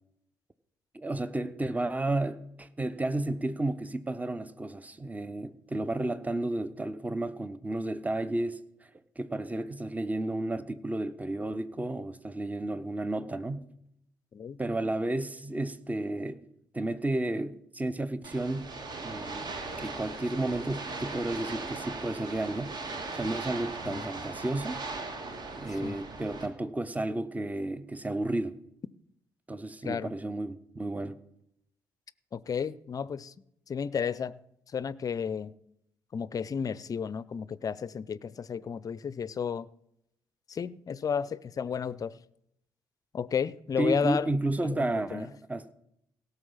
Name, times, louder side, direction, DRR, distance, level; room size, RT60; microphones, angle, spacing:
voice 1, 0.9-8.6 9.2-13.7 14.6-16.5 16.7-18.7 19.0-19.5 19.8-22.7 23.1-24.8 25.6-28.6 29.5-31.2 43.8-45.7, right 2 dB, 15° right, 0.9 m, -32 dB
sound 1, 18.2-26.5, right 3 dB, 45° right, 1.9 m, -39 dB
voice 2, 32.3-33.3 33.7-34.4 34.7-35.5 36.1-39.7 40.5-42.1 43.1-44.3 44.6-45.3, left 7 dB, 35° left, 0.5 m, -32 dB
17.0 x 6.9 x 5.6 m
figure-of-eight pair, 45°, 10 cm